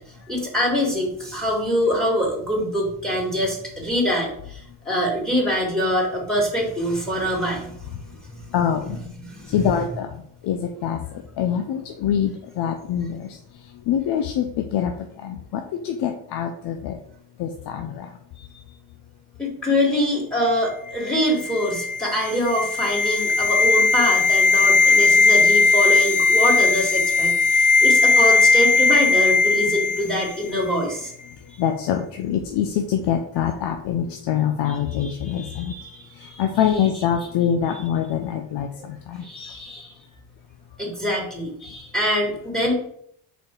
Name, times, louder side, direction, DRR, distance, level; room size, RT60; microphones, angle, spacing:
voice 1, 0.3-4.6 4.9-7.7 9.2-9.8 19.4-31.1 34.7-36.4 36.8-36.9 39.2-39.9 40.8-42.7, equal, ahead, -1 dB, 2.2 m, -24 dB
voice 2, 8.5-9.0 9.5-10.1 10.4-11.0 11.4-13.4 13.9-14.9 15.2-17.0 17.4-18.1 31.6-35.7 36.4-39.5, left 9 dB, 85° left, 5 dB, 0.7 m, -24 dB
sound 1, 21.1-30.3 30.6-30.7, left 4 dB, 20° left, 0.3 m, -18 dB
5.2 x 4.4 x 4.5 m, 0.66 s
cardioid pair, 120°, 40 cm